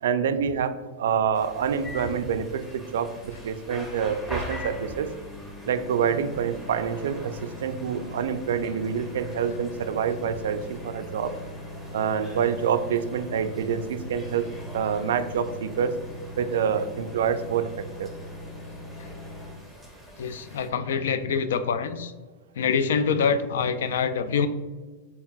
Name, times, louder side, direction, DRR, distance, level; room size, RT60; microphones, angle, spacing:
voice 1, 0.0-5.1 5.7-11.3 11.9-16.0 16.4-18.1, right 7 dB, 80° right, 10 dB, 0.3 m, -27 dB
sound 1, 1.3-20.7, equal, 10° left, 0.7 m, -44 dB
sound 2, 1.5-19.5, left 1 dB, 25° left, 1.1 m, -41 dB
voice 2, 20.2-22.1 22.6-24.5, left 6 dB, 80° left, 11 dB, 0.3 m, -25 dB
4.5 x 3.3 x 2.3 m, 1.3 s
supercardioid pair, 140°, 0 cm